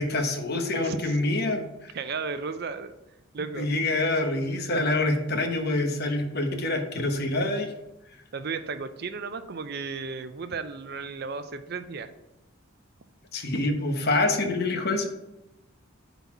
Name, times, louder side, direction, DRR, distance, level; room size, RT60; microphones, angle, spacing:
voice 1, 0.0-1.9 3.6-7.7 13.3-15.1, left 2 dB, 50° left, 5 dB, 1.0 m, -26 dB
voice 2, 0.8-1.2 1.9-2.9 3.3-3.7 8.3-12.1, right 4 dB, 50° right, 10 dB, 0.5 m, -34 dB
8.1 x 4.1 x 5.9 m, 0.93 s
head